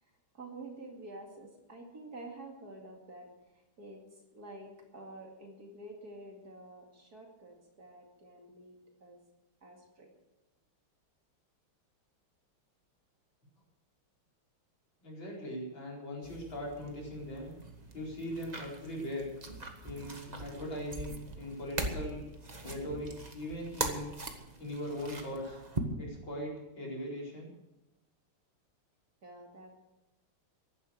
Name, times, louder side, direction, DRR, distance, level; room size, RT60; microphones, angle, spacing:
voice 1, 0.0-9.2 9.6-10.1 29.2-29.7, right 2 dB, 45° right, 1 dB, 2.7 m, -49 dB
voice 2, 15.0-17.5 17.9-19.3 19.8-22.2 22.6-24.1 24.6-25.6 26.0-27.5, equal, 60° left, -3 dB, 5.2 m, -40 dB
sound 1, 16.2-25.8, right 2 dB, 20° right, 1.4 m, -41 dB
15.0 x 11.5 x 6.6 m, 0.97 s
omnidirectional pair, 2.4 m